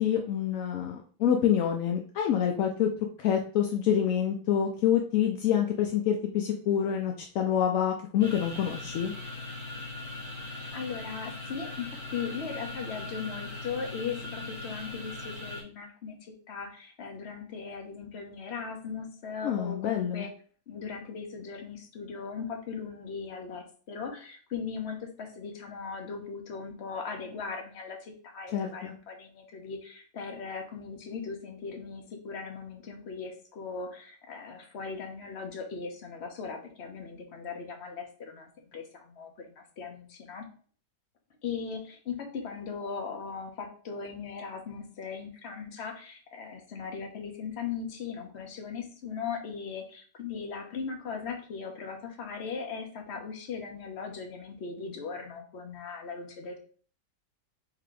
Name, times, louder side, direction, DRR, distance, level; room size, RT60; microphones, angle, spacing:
voice 1, 0.0-2.9 3.2-9.1 19.4-20.3 28.5-28.9, left 9 dB, 70° left, 2 dB, 0.8 m, -27 dB
sound 1, 8.2-15.6, left 2 dB, 10° left, 1.3 m, -40 dB
voice 2, 10.5-20.3 20.7-40.4 41.4-56.6, left 5 dB, 45° left, 3 dB, 1.0 m, -38 dB
3.9 x 2.8 x 4.7 m, 0.44 s
omnidirectional pair, 1.8 m